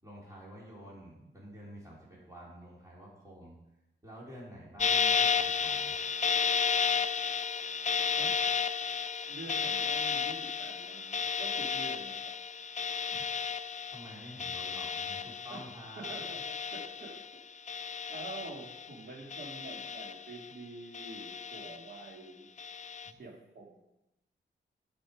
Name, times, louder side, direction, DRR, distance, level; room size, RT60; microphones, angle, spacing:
voice 1, 0.0-3.6 4.0-5.9 13.1-13.3 13.9-16.2 23.0-23.2, equal, 15° right, -6 dB, 3.6 m, -49 dB
sound 1, 4.8-17.4 17.7-18.9 19.3-20.5 20.9-22.0 22.6-23.1, left 6 dB, 35° left, 0.4 m, -33 dB
voice 2, 9.3-12.3 15.5-15.6 16.0-16.4 16.7-17.2 18.1-22.5 23.1-23.8, right 2 dB, 60° right, 0 dB, 2.5 m, -46 dB
11.0 x 6.1 x 5.1 m, 0.92 s
cardioid pair, 75°, 20 cm